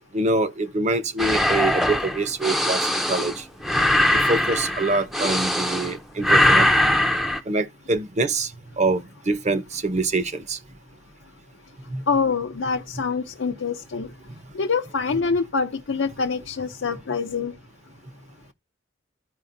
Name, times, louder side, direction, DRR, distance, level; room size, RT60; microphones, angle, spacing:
voice 1, 0.1-3.5 4.1-6.7 7.5-10.6 11.9-12.0, right 2 dB, 35° right, 0.7 m, -25 dB
sound 1, 1.2-6.0 6.2-7.4, left 1 dB, ahead, 0.5 m, -21 dB
voice 2, 12.1-14.1 14.5-17.5, left 5 dB, 75° left, 0.6 m, -25 dB
14.0 x 5.0 x 2.6 m
head